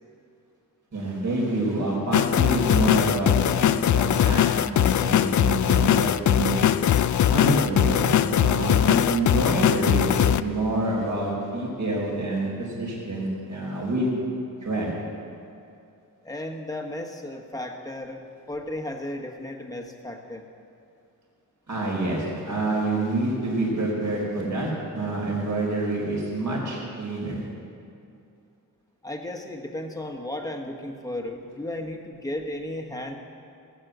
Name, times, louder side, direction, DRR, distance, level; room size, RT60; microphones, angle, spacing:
voice 1, 0.9-6.7 7.3-14.1 14.6-14.9 21.7-27.4, right 2 dB, 55° right, -3 dB, 4.6 m, -27 dB
sound 1, 2.1-10.4, left 10 dB, 60° left, 0.4 m, -21 dB
voice 2, 16.2-20.5 29.0-33.2, left 1 dB, 10° left, 3 dB, 1.3 m, -34 dB
17.5 x 8.5 x 7.9 m, 2.5 s
wide cardioid pair, 135°, 34 cm